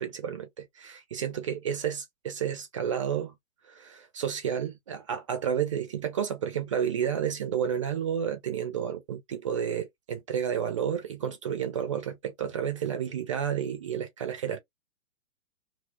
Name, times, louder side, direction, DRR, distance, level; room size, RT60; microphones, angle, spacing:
voice 1, 0.0-3.3 3.7-14.6, right 8 dB, 25° right, 0.4 m, -31 dB
2.9 x 2.6 x 2.9 m
figure-of-eight pair, 120°, 41 cm